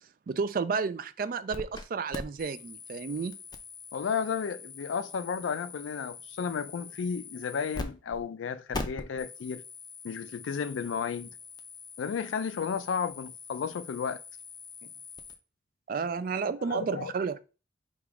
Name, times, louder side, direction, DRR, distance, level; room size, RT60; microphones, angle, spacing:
voice 1, 0.3-3.3 15.9-17.4, right 5 dB, 45° right, 0.3 m, -31 dB
sound 1, 1.5-1.8 2.1-8.2 8.7-15.3, left 3 dB, 20° left, 0.4 m, -43 dB
voice 2, 3.9-9.6 10.0-11.3 12.0-14.2 16.3-17.1, left 6 dB, 90° left, 0.4 m, -33 dB
3.5 x 3.0 x 4.8 m
head